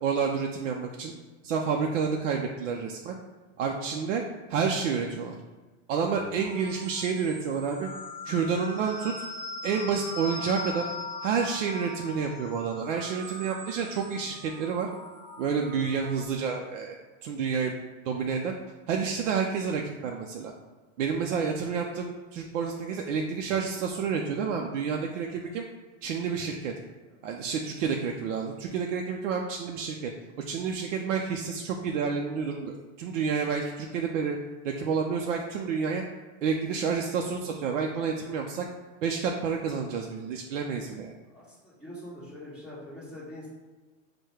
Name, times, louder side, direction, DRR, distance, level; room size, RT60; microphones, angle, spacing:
voice 1, 0.0-1.1 1.4-3.2 3.6-4.2 4.5-5.4 5.9-7.9 8.3-9.2 9.6-10.9 11.2-14.9 15.4-17.7 18.1-18.6 18.9-20.5 21.0-25.7 26.0-26.7 27.2-30.1 30.5-34.4 34.6-36.0 36.4-38.7 39.0-41.1, right 6 dB, 75° right, 2 dB, 0.5 m, -29 dB
sound 1, 6.4-16.3, left 2 dB, 45° right, 1.1 m, -40 dB
voice 2, 41.3-43.5, left 1 dB, ahead, -11 dB, 1.4 m, -44 dB
4.5 x 2.2 x 4.7 m, 1.2 s
supercardioid pair, 165°, 37 cm